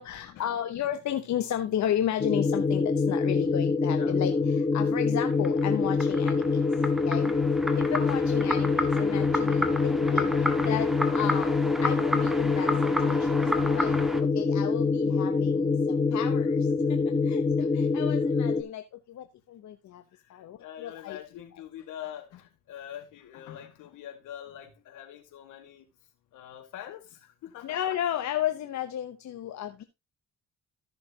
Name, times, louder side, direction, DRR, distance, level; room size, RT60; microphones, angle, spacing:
voice 1, 0.0-6.6 7.1-7.3 7.7-10.3 10.6-11.5 11.8-12.7 13.0-17.0 17.3-18.8 19.1-20.0 20.3-21.2 27.6-29.8, left 11 dB, 65° left, 1.0 m, -33 dB
sound 1, 2.2-18.6, left 4 dB, 20° left, 1.2 m, -25 dB
sound 2, 5.3-14.2, equal, ahead, 1.5 m, -33 dB
voice 2, 9.3-11.0 12.4-12.5 13.3-13.4 16.1-16.8 20.3-25.8 26.3-28.0, left 11 dB, 90° left, 2.0 m, -45 dB
14.0 x 6.5 x 2.8 m
cardioid pair, 90°, 30 cm